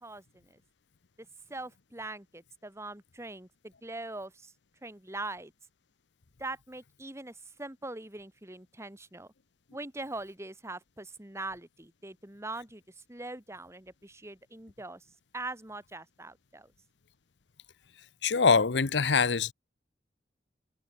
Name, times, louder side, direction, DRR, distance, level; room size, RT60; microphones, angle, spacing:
voice 1, 0.0-0.6 1.5-4.5 4.8-5.5 6.4-9.3 9.7-12.8 13.1-15.0 15.3-16.7, right 2 dB, 15° right, 2.2 m, -42 dB
voice 2, 18.2-19.5, left 5 dB, 75° left, 0.9 m, -24 dB
head